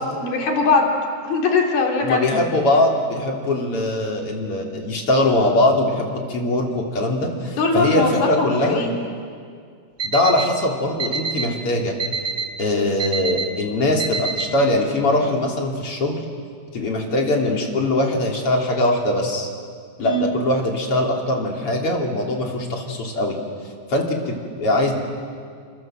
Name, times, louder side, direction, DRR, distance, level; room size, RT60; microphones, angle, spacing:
voice 1, 0.2-0.9 1.2-2.4 7.6-8.9 20.0-20.3, left 3 dB, 80° left, 0 dB, 5.1 m, -20 dB
voice 2, 2.0-8.8 10.0-11.9 12.6-16.2 16.7-19.5 20.0-23.4 23.9-24.9, left 1 dB, 40° left, 0 dB, 4.0 m, -21 dB
Alarm, 10.0-10.4 11.0-11.4 12.0-12.4 13.0-13.4 14.0-14.4, right 5 dB, 30° right, 1.3 m, -25 dB
28.5 x 26.0 x 7.8 m, 2.1 s
omnidirectional pair, 4.3 m